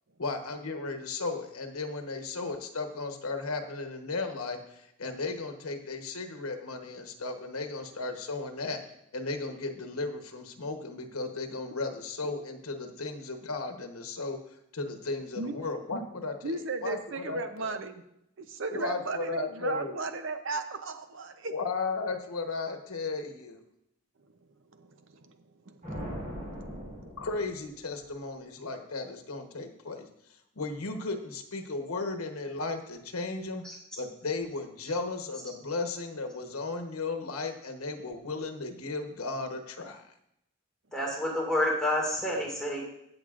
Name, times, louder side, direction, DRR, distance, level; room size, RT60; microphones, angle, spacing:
voice 1, 0.2-8.8 9.1-14.4 14.7-17.7 18.7-20.0 21.5-23.6 27.2-30.1 30.5-33.6 34.0-40.0, left 3 dB, 85° left, 6 dB, 1.1 m, -35 dB
voice 2, 16.4-18.0 18.4-21.5 24.8-24.9 25.1-25.3 25.7-25.8, right 3 dB, 60° right, 8 dB, 0.7 m, -35 dB
sound 1, 25.8-28.1, equal, 35° right, 3.6 m, -40 dB
voice 3, 40.9-42.8, left 1 dB, 5° left, -4 dB, 2.1 m, -29 dB
17.0 x 6.7 x 2.5 m, 0.78 s
head